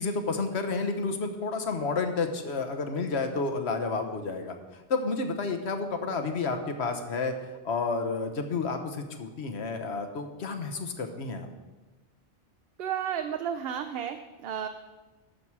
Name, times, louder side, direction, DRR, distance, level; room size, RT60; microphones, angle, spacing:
voice 1, 0.0-7.3 7.6-11.5, left 4 dB, 75° left, 6 dB, 1.3 m, -30 dB
voice 2, 12.8-14.7, right 9 dB, 65° right, 8 dB, 0.8 m, -32 dB
12.0 x 7.3 x 4.7 m, 1.1 s
omnidirectional pair, 1.1 m